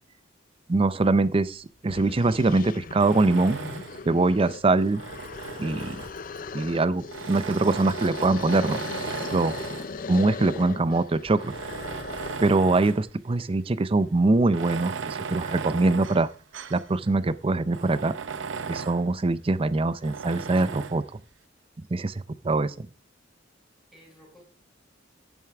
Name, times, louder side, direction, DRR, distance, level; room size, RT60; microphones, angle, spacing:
voice 1, 0.7-3.6 4.1-5.0 5.6-6.0 6.5-8.8 9.3-9.6 10.1-11.5 12.4-16.3 16.7-18.1 18.7-21.0 21.9-22.1 22.4-22.9, right 2 dB, 30° right, 16 dB, 0.5 m, -23 dB
sound 1, 1.5-1.6 1.8-12.6, left 4 dB, 45° left, 0.5 m, -38 dB
Tools, 3.0-4.1 4.8-6.4 7.1-10.0 10.7-10.8 11.3-13.1 13.5-13.6 14.4-16.9 17.3-17.4 17.7-19.1 20.0-21.0, right 5 dB, 70° right, 0.6 m, -36 dB
voice 2, 23.9-24.5, equal, ahead, -8 dB, 5.3 m, -55 dB
11.0 x 10.5 x 3.4 m, 0.37 s
head